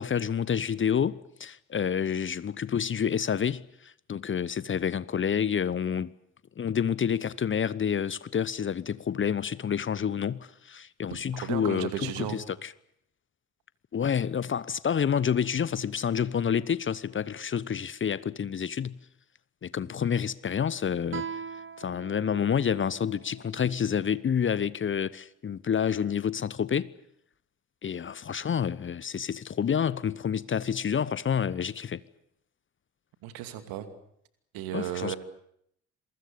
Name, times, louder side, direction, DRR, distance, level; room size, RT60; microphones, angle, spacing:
voice 1, 0.0-6.1 6.6-12.7 13.9-19.0 19.6-21.3 21.8-26.9 27.8-32.0 34.7-35.2, left 8 dB, 30° left, 0.9 m, -28 dB
voice 2, 11.1-12.4 33.2-33.9 34.5-35.2, right 11 dB, 65° right, 2.6 m, -34 dB
Guitar, 21.1-24.4, right 6 dB, 30° right, 1.4 m, -41 dB
27.5 x 23.0 x 6.8 m
figure-of-eight pair, 45°, 38 cm